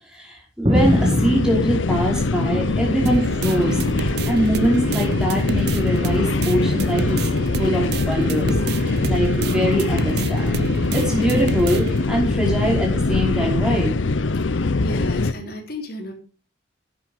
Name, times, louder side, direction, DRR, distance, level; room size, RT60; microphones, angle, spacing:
voice 1, 0.1-3.8 4.3-7.3 7.6-8.6 9.1-10.6 10.9-13.9, equal, 5° right, -2 dB, 5.0 m, -23 dB
sound 1, 0.6-2.9 3.2-4.2 5.0-5.4 6.4-6.6, equal, 25° right, 1.9 m, -25 dB
sound 2, 0.7-15.3, left 3 dB, 80° left, 0.7 m, -22 dB
sound 3, 3.1-12.1, right 4 dB, 55° right, 0.6 m, -29 dB
voice 2, 14.4-16.1, left 1 dB, 50° left, 1 dB, 3.9 m, -34 dB
11.0 x 9.1 x 5.3 m, 0.37 s
head